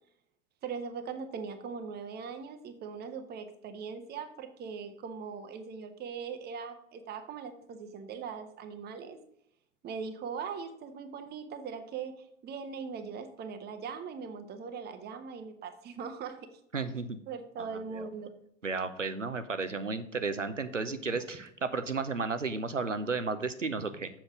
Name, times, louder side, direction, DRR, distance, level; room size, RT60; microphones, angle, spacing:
voice 1, 0.6-9.2 9.8-16.5 17.3-18.3, right 6 dB, 25° right, 8 dB, 1.1 m, -40 dB
voice 2, 16.7-17.2 17.6-18.1 18.6-24.1, right 4 dB, 90° right, 11 dB, 0.8 m, -33 dB
7.5 x 7.3 x 5.0 m, 0.74 s
figure-of-eight pair, 85°, 36 cm